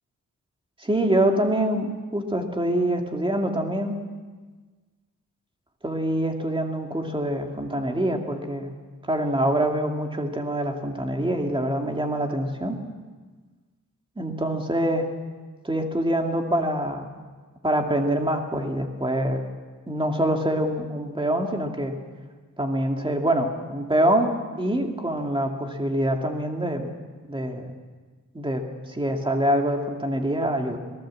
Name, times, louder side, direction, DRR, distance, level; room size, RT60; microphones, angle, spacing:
voice 1, 0.8-4.0 5.8-8.7 9.0-12.8 14.2-15.1 15.6-17.1 17.6-19.4 19.9-22.0 22.6-24.3 24.6-26.9 27.3-27.7 28.3-30.8, right 1 dB, 15° right, 3 dB, 2.4 m, -25 dB
26.5 x 18.5 x 7.6 m, 1.4 s
wide cardioid pair, 160°, 31 cm